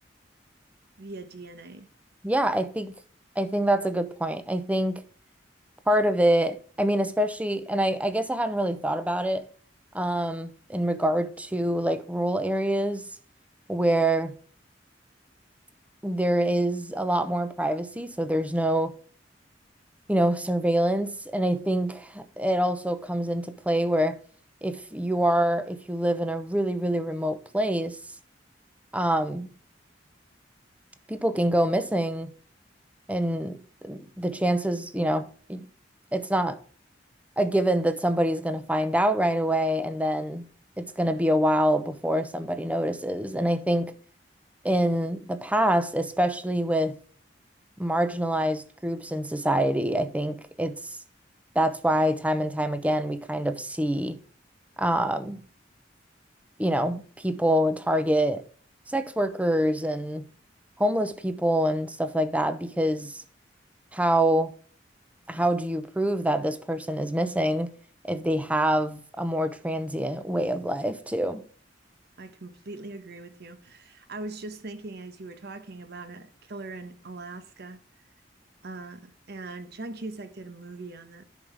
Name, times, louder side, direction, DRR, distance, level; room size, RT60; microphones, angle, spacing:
voice 1, 1.0-1.9 72.2-77.8 78.6-81.2, right 2 dB, 60° right, 1.2 m, -41 dB
voice 2, 2.2-2.9 3.4-5.0 5.9-9.4 9.9-13.1 13.7-14.4 16.0-18.9 20.1-24.2 24.6-28.0 28.9-29.5 31.1-32.3 33.1-33.6 33.8-35.6 36.1-36.6 37.4-40.4 40.8-43.9 44.6-47.0 47.8-51.0 51.5-54.2 54.8-55.4 56.6-58.4 58.9-60.3 60.8-63.2 63.9-64.5 65.3-67.7 68.0-71.4, right 1 dB, 10° right, 0.7 m, -25 dB
10.5 x 5.7 x 3.4 m
head